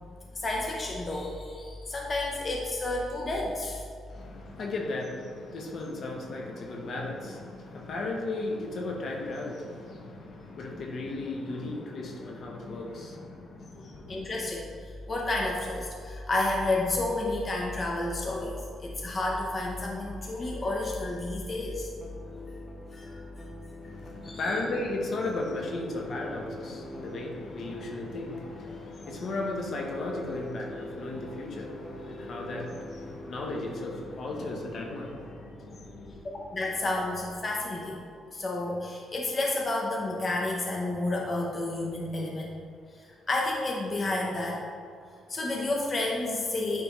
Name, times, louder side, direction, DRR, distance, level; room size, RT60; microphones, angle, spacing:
voice 1, 0.3-3.8 13.7-14.7 15.1-21.9 22.9-23.2 24.2-24.5 36.5-38.0 38.3-42.5 43.3-44.6 45.3-46.8, left 2 dB, 35° left, -1 dB, 0.8 m, -30 dB
voice 2, 4.1-14.2 23.8-36.2, left 2 dB, 60° left, 0 dB, 1.0 m, -35 dB
sound 1, 21.9-38.7, left 1 dB, 10° left, 0.9 m, -45 dB
9.4 x 3.5 x 3.1 m, 2.3 s
cardioid pair, 90°, 0 cm